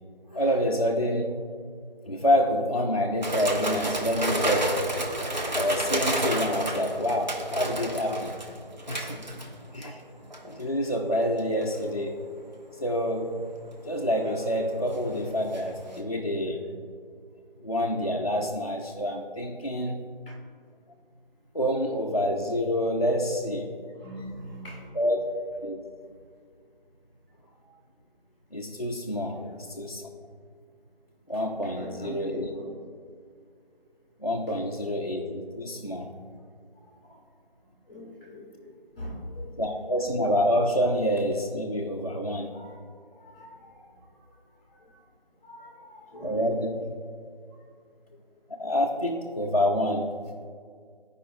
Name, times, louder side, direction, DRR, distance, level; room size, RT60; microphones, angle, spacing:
voice 1, 0.3-1.4 2.1-4.7 5.5-8.3 8.9-9.3 9.7-10.0 10.4-12.2 12.8-13.4 13.9-16.7 17.6-20.1 21.5-23.7 25.0-25.3 25.6-25.8 28.5-29.4 29.8-30.1 31.3-32.5 34.2-36.1 39.6-42.5 46.2-46.7 48.5-50.1, equal, 40° left, -1 dB, 0.4 m, -27 dB
sound 1, 3.2-9.9 10.3-10.6 11.4-11.8 14.0-15.6 15.9-16.0, right 1 dB, 50° right, 0.8 m, -31 dB
voice 2, 23.9-24.9 29.3-29.5 31.6-32.7 35.9-36.0 37.0-37.2 37.9-39.5 42.5-42.8 43.2-43.9 44.9-45.0 45.4-46.7, left 1 dB, 10° left, -5 dB, 1.4 m, -42 dB
13.5 x 5.0 x 2.3 m, 2.1 s
figure-of-eight pair, 170°, 29 cm